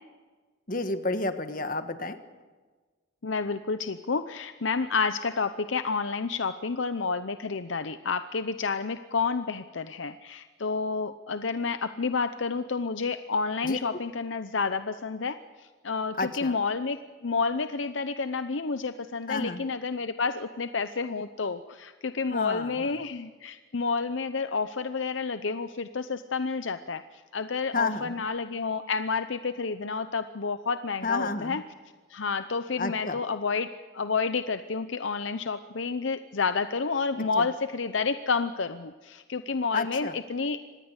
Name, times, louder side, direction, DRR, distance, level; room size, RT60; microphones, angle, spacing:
voice 1, 0.7-2.2 13.6-13.8 16.2-16.6 19.3-19.6 22.3-23.0 27.7-28.2 31.0-31.6 32.8-33.2 37.2-37.5 39.7-40.2, left 3 dB, 45° left, 9 dB, 1.5 m, -31 dB
voice 2, 3.2-27.0 27.3-31.6 32.1-40.6, left 4 dB, 75° left, 10 dB, 0.8 m, -30 dB
25.5 x 19.5 x 8.2 m, 1.4 s
head